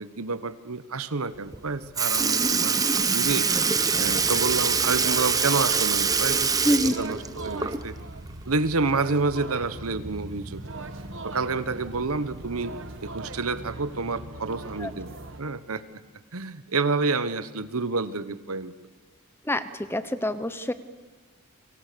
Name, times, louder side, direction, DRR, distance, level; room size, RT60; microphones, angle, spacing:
voice 1, 0.0-3.5 4.0-7.9 8.5-10.6 11.2-12.7 13.0-15.8 16.3-18.7, right 3 dB, 75° right, 14 dB, 1.1 m, -29 dB
Sink (filling or washing) / Liquid, 1.5-1.6 2.0-8.1 8.4-8.5 10.1-10.2 11.1-11.2 12.0-12.2 13.0-13.1, right 5 dB, 15° right, 0.9 m, -24 dB
sound 1, 3.9-15.4, right 2 dB, 60° right, 1.6 m, -40 dB
voice 2, 6.6-6.9 14.8-14.9 19.4-20.7, left 1 dB, 10° left, 12 dB, 0.9 m, -26 dB
29.5 x 23.5 x 6.9 m, 1.3 s
head